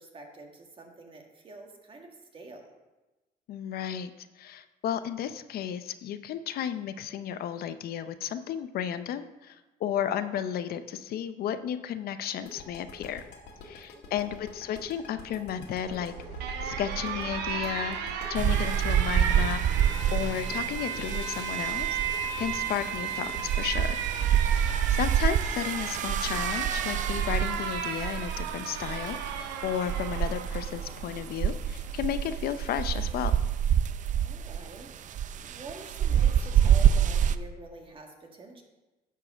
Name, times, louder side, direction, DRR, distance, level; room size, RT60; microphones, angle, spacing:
voice 1, 0.0-2.7 13.9-14.5 24.1-24.4 24.6-25.0 34.2-38.6, right 3 dB, 30° right, 2 dB, 1.8 m, -47 dB
voice 2, 3.5-13.2 13.6-16.1 16.6-18.0 18.3-21.9 22.4-24.0 24.9-33.4, left 9 dB, 65° left, 11 dB, 0.6 m, -33 dB
sound 1, 12.5-25.2, left 4 dB, 80° left, 2.2 m, -46 dB
Alarm, 15.9-33.1, right 7 dB, 85° right, 1.0 m, -35 dB
sound 2, 18.4-37.4, right 9 dB, 50° right, 0.5 m, -27 dB
11.0 x 4.7 x 6.8 m, 1.1 s
cardioid pair, 110°, 17 cm